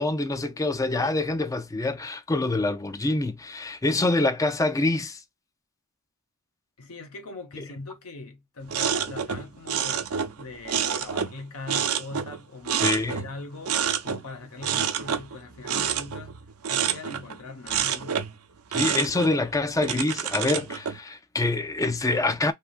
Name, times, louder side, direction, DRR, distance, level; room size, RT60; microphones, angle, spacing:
voice 1, 0.0-5.2 12.8-13.2 18.7-22.5, left 2 dB, 15° left, 0.4 m, -25 dB
voice 2, 6.8-18.2, left 3 dB, 75° left, 0.8 m, -41 dB
sound 1, 8.7-11.4 11.7-13.4 13.7-14.2 14.6-17.4 17.7-18.4 18.7-21.0, right 8 dB, 85° right, 0.6 m, -28 dB
3.6 x 2.6 x 2.4 m
head